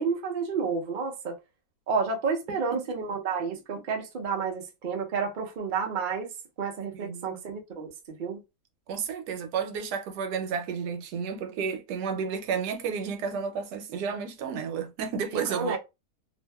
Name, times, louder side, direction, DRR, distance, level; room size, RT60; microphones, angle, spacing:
voice 1, 0.0-1.4 1.9-6.3 6.6-8.4 15.3-15.8, right 5 dB, 65° right, 0.5 m, -30 dB
voice 2, 6.9-7.4 8.9-15.8, right 6 dB, 85° right, 1.2 m, -32 dB
2.6 x 2.4 x 2.2 m
omnidirectional pair, 1.7 m